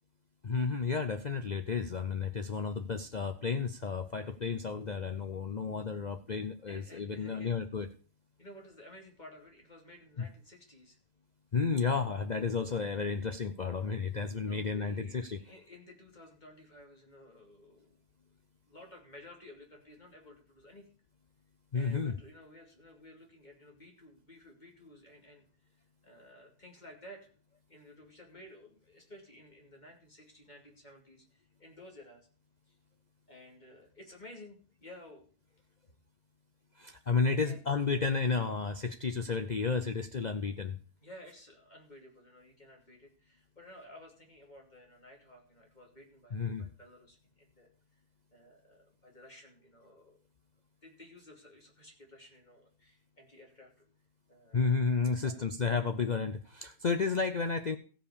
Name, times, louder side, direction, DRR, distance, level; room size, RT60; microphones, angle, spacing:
voice 1, 0.4-7.9 10.2-10.3 11.5-15.4 21.7-22.2 36.8-40.8 46.3-46.7 54.5-57.8, left 5 dB, 65° left, 7 dB, 0.4 m, -32 dB
voice 2, 6.7-7.5 8.4-11.0 14.4-18.0 18.6-21.0 21.7-25.5 26.0-27.3 27.7-32.3 32.7-32.8 33.3-35.3 35.8-35.9 37.3-37.6 41.0-47.7 48.3-50.2 50.8-53.7 54.3-54.7 55.0-55.5, left 1 dB, 30° left, 1 dB, 2.7 m, -54 dB
15.0 x 5.2 x 6.8 m, 0.41 s
omnidirectional pair, 1.6 m